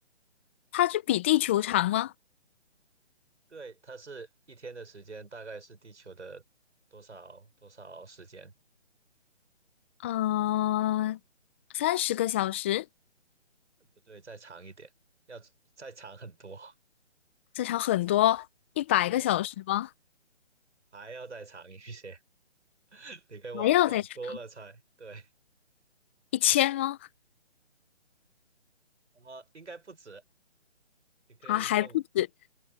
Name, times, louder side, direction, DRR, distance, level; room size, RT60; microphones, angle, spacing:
voice 1, 0.7-2.1 10.0-11.2 11.7-12.8 17.6-18.5 18.8-19.9 23.5-24.0 26.3-27.0 31.5-32.3, left 14 dB, 10° left, 0.6 m, -26 dB
voice 2, 3.5-6.4 6.9-8.5 13.8-14.9 15.3-15.5 15.8-16.7 19.0-19.3 20.9-22.2 22.9-25.3 29.1-30.2 31.3-32.0, right 4 dB, 80° right, 6.6 m, -45 dB
figure-of-eight pair, 150°, 35 cm